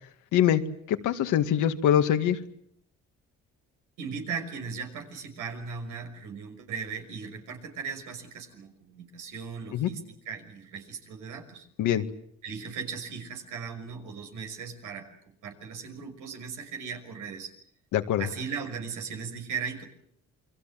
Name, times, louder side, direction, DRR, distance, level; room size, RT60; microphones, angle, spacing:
voice 1, 0.3-0.6 0.9-2.4 9.7-9.9 11.8-12.0 17.9-18.3, left 10 dB, 90° left, 7 dB, 2.1 m, -23 dB
voice 2, 4.0-10.0 10.3-11.7 12.4-15.1 15.4-17.5 18.2-19.8, right 6 dB, 90° right, 5 dB, 5.9 m, -37 dB
29.0 x 22.5 x 7.7 m, 0.70 s
cardioid pair, 90°, 30 cm